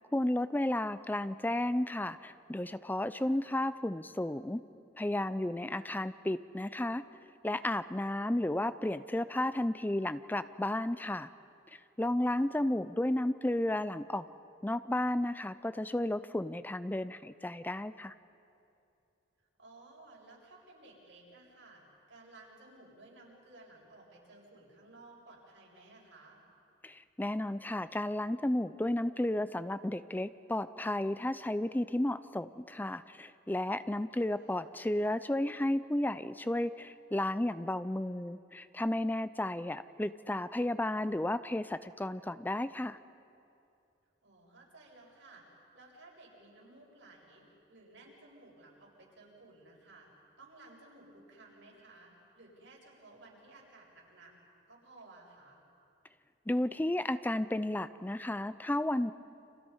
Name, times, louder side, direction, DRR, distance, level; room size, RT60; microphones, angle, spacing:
voice 1, 0.1-4.6 5.0-7.0 7.4-11.3 11.7-14.3 14.6-18.1 26.8-43.0 56.5-59.1, left 1 dB, 10° left, 13 dB, 0.5 m, -33 dB
voice 2, 3.1-3.5 12.2-12.6 19.6-21.8 22.1-26.4 34.3-34.7 44.2-50.1 50.4-54.3 54.7-55.6, right 2 dB, 80° right, -3 dB, 7.2 m, -56 dB
30.0 x 27.0 x 5.5 m, 2.6 s
head